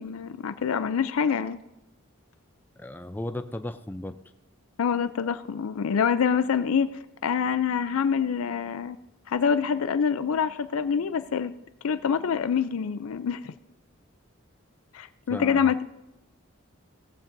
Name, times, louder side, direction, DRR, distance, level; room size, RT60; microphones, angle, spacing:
voice 1, 0.0-1.6 4.8-6.9 7.2-9.0 9.3-11.5 11.8-13.5 14.9-15.8, left 7 dB, 85° left, 12 dB, 0.4 m, -26 dB
voice 2, 2.8-4.2 15.3-15.7, left 1 dB, 10° left, 9 dB, 0.4 m, -35 dB
17.0 x 14.5 x 2.6 m, 0.96 s
head